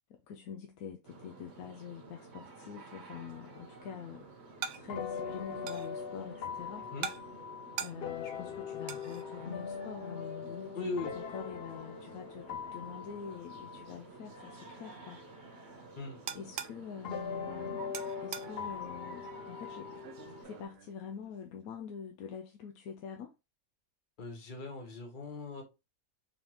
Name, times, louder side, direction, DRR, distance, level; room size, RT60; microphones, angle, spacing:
voice 1, 0.1-4.3 4.7-6.9 7.8-15.2 15.4-15.7 16.3-20.0 20.4-23.3, left 7 dB, 85° left, 1.1 m, -46 dB
sound 1, 1.0-20.7, right 3 dB, 55° right, 1.2 m, -52 dB
sound 2, 3.1-21.7, right 7 dB, 70° right, 0.6 m, -48 dB
sound 3, 3.6-3.8 4.9-14.8 15.5-15.6 17.0-20.4, left 6 dB, 60° left, 0.6 m, -42 dB
voice 2, 10.7-11.1 16.0-16.2 24.2-25.6, left 3 dB, 40° left, 1.1 m, -39 dB
4.0 x 3.4 x 2.9 m
omnidirectional pair, 1.5 m